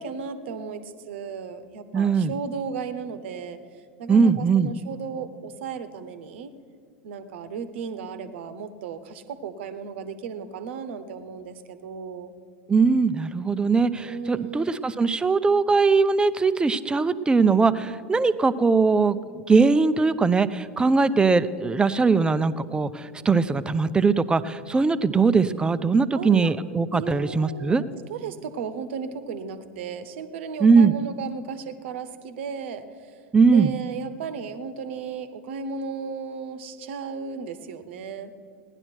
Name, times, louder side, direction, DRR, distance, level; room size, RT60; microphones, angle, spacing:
voice 1, 0.0-3.6 4.0-6.5 7.0-12.3 14.1-14.7 26.1-26.5 26.9-27.8 28.1-33.1 33.5-38.3, right 6 dB, 65° right, 11 dB, 0.9 m, -35 dB
voice 2, 1.9-2.3 4.1-4.7 12.7-19.2 19.5-27.8 30.6-30.9 33.3-33.7, right 4 dB, 15° right, 14 dB, 0.5 m, -20 dB
17.0 x 10.5 x 4.5 m, 2.2 s
figure-of-eight pair, 85°, 7 cm